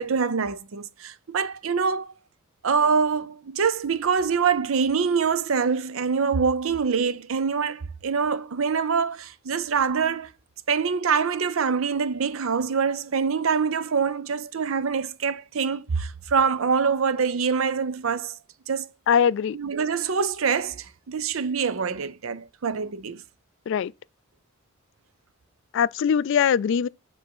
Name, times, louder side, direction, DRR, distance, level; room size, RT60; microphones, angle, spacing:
voice 1, 0.0-2.1 2.6-10.3 10.7-18.4 18.7-18.9 19.5-23.2, right 5 dB, 75° right, 0.6 m, -25 dB
voice 2, 19.1-19.6 23.7-23.9 25.7-26.9, left 7 dB, 65° left, 0.3 m, -21 dB
7.6 x 3.4 x 6.0 m
head